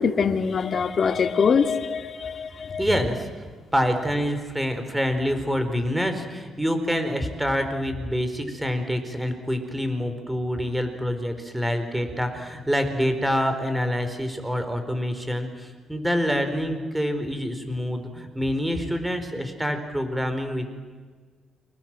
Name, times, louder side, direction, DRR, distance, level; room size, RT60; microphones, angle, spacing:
voice 1, 0.0-2.8, left 6 dB, 50° left, 7 dB, 2.4 m, -23 dB
voice 2, 2.8-3.3 3.7-20.8, equal, 5° right, 8 dB, 4.6 m, -26 dB
29.5 x 26.0 x 7.7 m, 1.5 s
cardioid pair, 90°, 0 cm